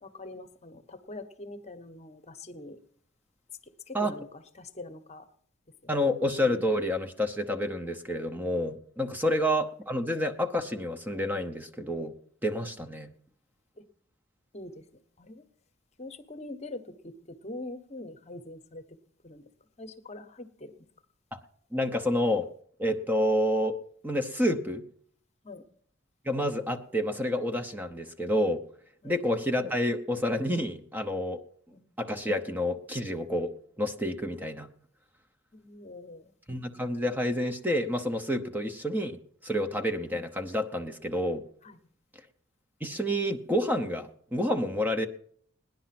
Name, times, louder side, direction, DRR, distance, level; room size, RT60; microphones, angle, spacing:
voice 1, 0.0-2.8 3.9-5.2 5.8-6.0 9.2-9.3 12.7-12.8 14.5-14.8 15.2-15.4 16.0-19.0 19.2-19.5 19.8-20.9 25.4-25.6 29.0-29.2 31.7-31.9 35.5-36.3 39.6-39.7 41.6-41.8, left 2 dB, 35° left, 9 dB, 1.0 m, -44 dB
voice 2, 5.9-12.1 12.4-13.1 21.7-22.5 22.8-24.8 26.2-28.6 29.0-31.4 32.0-34.7 36.5-41.4 42.8-45.1, equal, 10° right, 6 dB, 0.9 m, -29 dB
18.0 x 10.5 x 5.9 m, 0.62 s
head